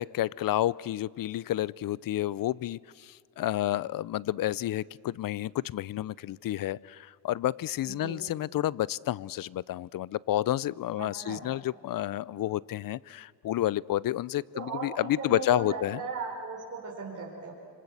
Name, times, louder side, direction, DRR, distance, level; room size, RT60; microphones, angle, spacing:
voice 1, 0.0-16.0, left 13 dB, 50° left, 23 dB, 0.6 m, -30 dB
voice 2, 7.8-8.3 11.0-11.4 14.5-17.5, right 4 dB, 35° right, -4 dB, 5.1 m, -37 dB
26.5 x 26.0 x 8.1 m, 2.3 s
cardioid pair, 115°, 44 cm